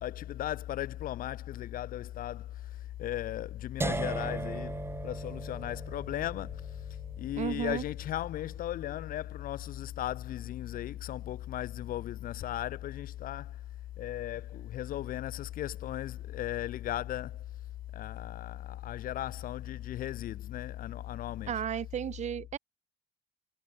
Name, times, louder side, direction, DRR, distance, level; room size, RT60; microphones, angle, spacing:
voice 1, 0.0-6.9 7.2-13.6 14.0-17.5 17.9-21.6, left 13 dB, 60° left, 0.6 m, -36 dB
sound 1, 3.8-9.7, right 3 dB, 15° right, 1.6 m, -39 dB
voice 2, 7.4-7.8 21.5-22.6, right 9 dB, 45° right, 0.6 m, -33 dB
cardioid pair, 110°, 17 cm